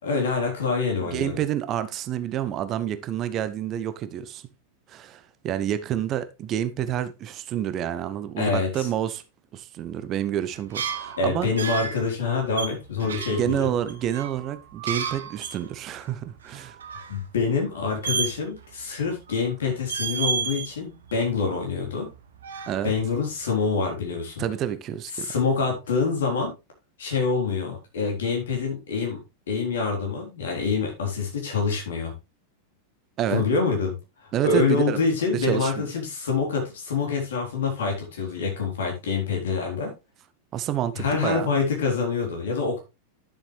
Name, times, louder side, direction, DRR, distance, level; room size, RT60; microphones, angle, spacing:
voice 1, 0.0-1.4 8.4-8.9 11.2-13.7 17.1-22.1 22.8-24.4 25.2-26.5 27.0-29.2 29.5-32.1 33.3-33.9 34.2-39.9 41.0-42.8, left 4 dB, 60° left, 3.9 m, -26 dB
voice 2, 1.0-4.4 4.9-9.2 9.5-11.5 13.0-16.8 22.7-22.9 24.4-25.3 33.2-33.4 34.3-35.0 35.3-35.9 40.5-41.5, right 10 dB, 35° right, 0.9 m, -28 dB
sound 1, 10.6-12.0 12.6-15.6 15.9-16.0 16.4-17.2 18.0-18.7 19.0-19.5 19.8-20.7 21.1-22.1 22.4-23.2, right 6 dB, 65° right, 1.2 m, -31 dB
10.5 x 7.1 x 3.3 m
figure-of-eight pair, 90°, 0 cm